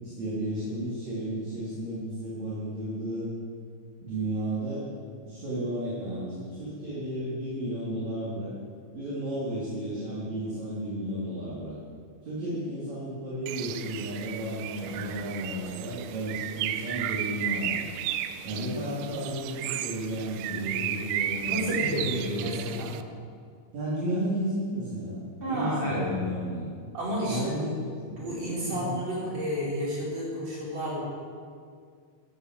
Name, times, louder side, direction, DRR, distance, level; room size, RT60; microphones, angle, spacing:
voice 1, 0.0-3.3 4.0-4.9 5.3-8.5 8.9-11.8 12.2-17.9 18.4-22.9 23.7-26.7 27.2-27.8 28.6-29.0, right 1 dB, 40° right, -8 dB, 3.8 m, -33 dB
Bird, 13.5-23.0, right 11 dB, 80° right, 2.8 m, -34 dB
voice 2, 21.4-22.9 25.4-26.1 26.9-27.8 28.2-31.0, equal, 25° right, -7 dB, 5.5 m, -31 dB
14.0 x 11.5 x 7.5 m, 2.1 s
omnidirectional pair, 5.5 m